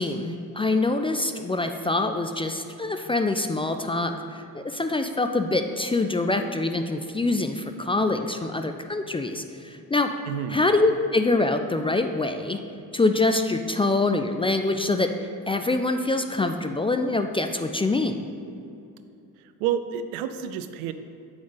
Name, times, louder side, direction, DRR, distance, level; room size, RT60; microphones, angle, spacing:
voice 1, 0.0-10.1 10.5-12.6 12.9-15.1 15.5-18.2, left 2 dB, 15° left, 6 dB, 0.3 m, -25 dB
voice 2, 10.3-10.6 19.6-20.9, right 9 dB, 75° right, 10 dB, 0.5 m, -29 dB
7.9 x 5.1 x 3.9 m, 2.7 s
hypercardioid pair, 40°, 43 cm